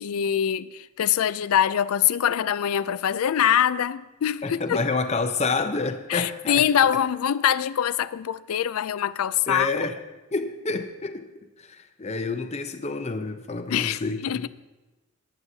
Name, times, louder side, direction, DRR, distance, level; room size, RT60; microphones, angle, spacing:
voice 1, 0.0-4.8 6.1-9.7 13.7-14.5, left 9 dB, 75° left, 0.4 m, -24 dB
voice 2, 4.4-7.0 9.5-10.0 10.3-14.5, left 3 dB, 30° left, 0.6 m, -29 dB
18.5 x 9.6 x 2.7 m
head